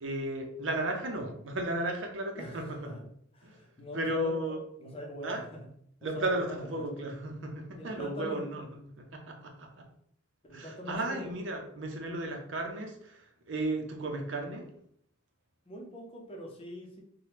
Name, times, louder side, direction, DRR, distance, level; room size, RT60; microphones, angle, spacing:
voice 1, 0.0-2.8 3.4-3.6 3.9-4.6 5.2-5.4 6.0-9.8 10.5-14.7, right 1 dB, 80° right, 3 dB, 0.6 m, -34 dB
voice 2, 2.3-3.0 3.3-4.5 4.8-5.6 6.0-7.1 7.8-8.4 10.5-11.3 15.7-17.0, left 1 dB, 30° left, 0 dB, 0.6 m, -43 dB
3.3 x 2.2 x 2.9 m, 0.69 s
head